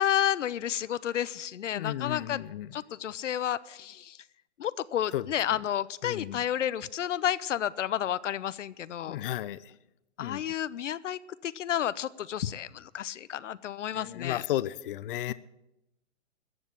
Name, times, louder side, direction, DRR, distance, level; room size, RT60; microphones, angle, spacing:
voice 1, 0.0-2.4 2.7-4.2 4.6-9.2 10.2-14.4 15.3-15.4, left 10 dB, 85° left, 17 dB, 0.7 m, -31 dB
voice 2, 1.7-2.7 5.1-5.2 6.0-6.4 9.1-9.7 10.2-10.4 13.9-15.3, left 13 dB, 50° left, 17 dB, 0.6 m, -33 dB
14.0 x 8.1 x 9.0 m, 0.89 s
hypercardioid pair, 145°, 36 cm